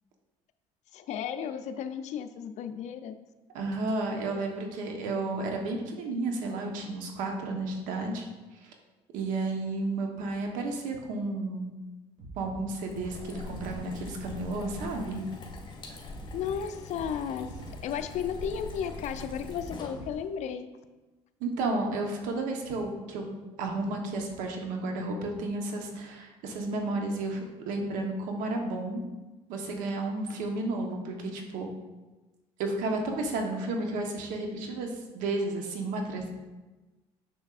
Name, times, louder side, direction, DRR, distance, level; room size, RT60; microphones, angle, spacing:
voice 1, 0.9-3.2 16.3-17.6 17.8-20.7, left 8 dB, 60° left, 9 dB, 0.5 m, -34 dB
voice 2, 3.5-8.3 9.1-11.7 12.4-15.2 21.4-29.0 29.5-31.7 32.6-36.3, right 2 dB, 80° right, 2 dB, 1.1 m, -32 dB
sound 1, 12.2-20.1, right 2 dB, 60° right, 1.9 m, -47 dB
sound 2, 12.7-20.4, left 2 dB, 35° left, 1.5 m, -43 dB
6.8 x 6.3 x 2.5 m, 1.2 s
supercardioid pair, 90°, 13 cm